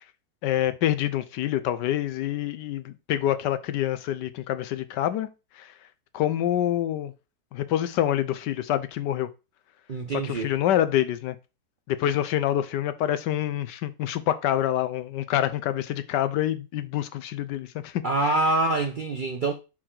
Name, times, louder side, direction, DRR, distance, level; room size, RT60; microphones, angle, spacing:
voice 1, 0.4-5.3 5.6-5.7 6.1-7.1 7.5-9.3 10.2-11.3 11.9-18.0, left 12 dB, 75° left, 1.2 m, -26 dB
voice 2, 9.9-10.5 18.0-19.5, right 2 dB, 80° right, 0.4 m, -25 dB
6.3 x 4.6 x 3.8 m
omnidirectional pair, 1.9 m